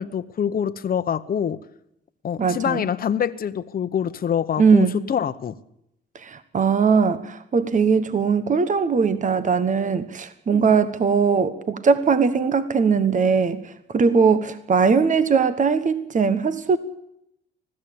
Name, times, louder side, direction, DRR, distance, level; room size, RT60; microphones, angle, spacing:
voice 1, 0.0-1.6 2.2-5.6 10.5-10.8, left 8 dB, 45° left, 10 dB, 1.1 m, -25 dB
voice 2, 2.4-2.8 4.6-5.0 6.1-16.8, right 5 dB, 40° right, 12 dB, 1.3 m, -20 dB
20.5 x 15.0 x 8.7 m, 0.77 s
cardioid pair, 90°, 20 cm